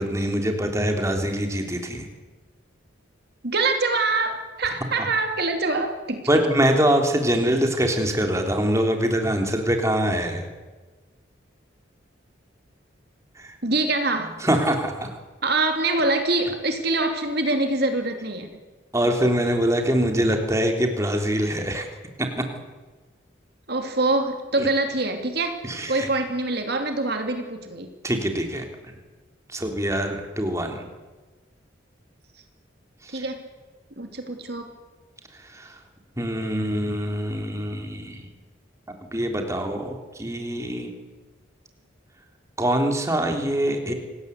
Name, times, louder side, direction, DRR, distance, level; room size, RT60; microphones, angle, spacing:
voice 1, 0.0-2.1 5.0-5.1 6.3-10.5 13.4-13.5 14.4-15.1 18.9-21.9 22.2-22.4 24.6-24.7 25.6-26.1 28.0-28.6 29.5-30.9 33.0-33.2 35.3-35.8 36.2-38.3 39.1-40.9 42.6-43.9, equal, 15° right, 3 dB, 3.3 m, -24 dB
voice 2, 3.4-6.3 13.6-14.4 15.4-18.5 23.7-25.6 25.9-27.9 33.1-33.4 34.0-34.7, right 2 dB, 55° right, 5 dB, 2.7 m, -24 dB
27.0 x 19.0 x 8.3 m, 1.2 s
head